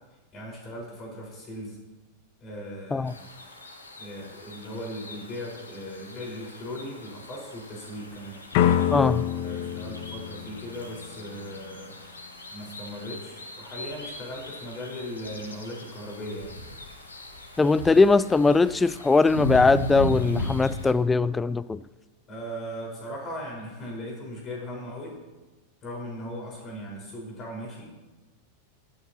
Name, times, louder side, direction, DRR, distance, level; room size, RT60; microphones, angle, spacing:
voice 1, 0.3-1.8 2.4-3.3 4.0-8.4 9.4-11.9 12.5-16.5 22.3-25.1 25.8-27.9, equal, 30° left, 4.7 m, -38 dB
sound 1, 3.1-20.9, left 2 dB, 75° left, 1.6 m, -38 dB
sound 2, 8.5-11.4, left 10 dB, 45° left, 0.7 m, -26 dB
voice 2, 8.9-9.2 17.6-21.8, left 3 dB, 10° left, 0.4 m, -20 dB
23.5 x 9.1 x 2.9 m
figure-of-eight pair, 90°, 0 cm